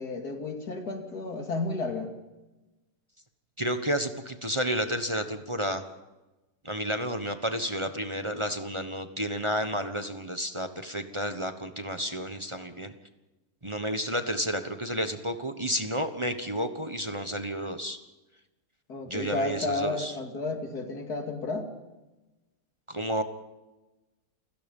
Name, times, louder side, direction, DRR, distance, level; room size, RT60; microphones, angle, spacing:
voice 1, 0.0-2.1 18.9-21.7, left 3 dB, 90° left, 5 dB, 3.0 m, -32 dB
voice 2, 3.6-5.8 6.6-12.9 13.6-18.0 19.1-20.1 22.9-23.2, equal, 20° right, 7 dB, 1.2 m, -31 dB
29.5 x 16.5 x 5.5 m, 1.1 s
omnidirectional pair, 1.6 m